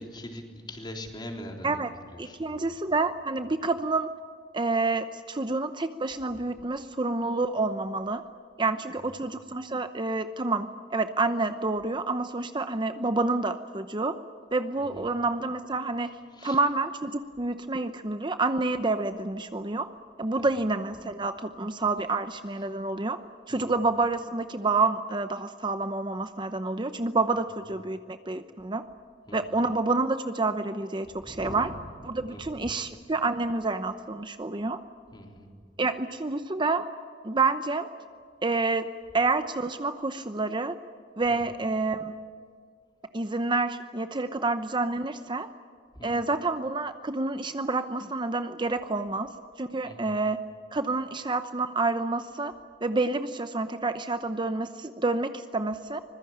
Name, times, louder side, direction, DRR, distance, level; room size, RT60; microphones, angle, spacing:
voice 1, 0.0-1.8 2.1-2.7 14.8-15.0 16.3-16.6 20.4-20.5 23.5-23.7 29.3-29.4 31.2-31.8 32.2-33.1 35.1-35.5 41.3-41.4 46.0-46.1 49.8-50.2, left 1 dB, 25° left, 3 dB, 3.7 m, -42 dB
voice 2, 2.2-4.1 4.5-8.2 8.6-14.2 14.5-16.1 16.4-19.9 20.2-23.2 23.5-28.8 29.3-31.7 32.0-34.8 35.8-36.8 37.2-37.9 38.4-40.8 41.2-42.1 43.1-45.5 46.0-49.3 49.6-50.4 50.7-52.5 52.8-56.0, right 3 dB, 25° right, 9 dB, 0.8 m, -28 dB
25.0 x 21.5 x 8.8 m, 2.1 s
head